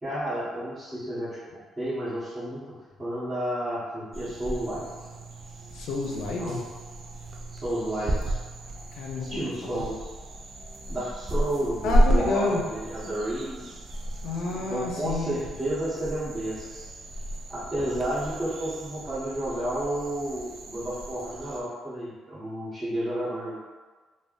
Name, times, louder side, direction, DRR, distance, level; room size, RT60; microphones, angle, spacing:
voice 1, 0.0-1.4 1.8-2.7 3.0-4.9 6.4-6.6 7.5-8.4 9.2-10.1 10.9-13.7 14.7-16.9 17.5-23.6, right 1 dB, 20° right, -12 dB, 1.3 m, -31 dB
sound 1, 4.1-21.6, right 1 dB, 55° right, 0.4 m, -32 dB
voice 2, 5.7-6.6 8.9-9.9 11.8-12.7 13.0-13.1 14.2-15.4, left 3 dB, 85° left, 0 dB, 0.5 m, -30 dB
3.4 x 2.1 x 2.5 m, 1.4 s
cardioid pair, 80°, 0 cm